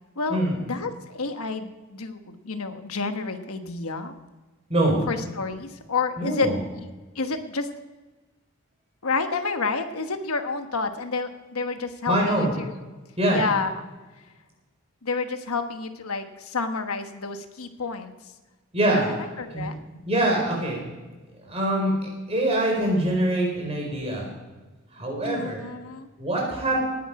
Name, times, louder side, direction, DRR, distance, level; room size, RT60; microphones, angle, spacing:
voice 1, 0.2-4.2 5.1-6.5 7.1-7.7 9.0-12.7 13.3-13.7 15.0-18.1 19.2-19.8 25.2-26.1, left 4 dB, 90° left, 7 dB, 1.2 m, -29 dB
voice 2, 6.2-6.6 12.1-12.5 13.2-13.4 18.7-19.1 19.5-20.8 21.4-24.3 24.9-25.6 26.2-26.8, right 1 dB, 30° right, -1 dB, 4.5 m, -24 dB
18.5 x 10.0 x 4.8 m, 1.2 s
head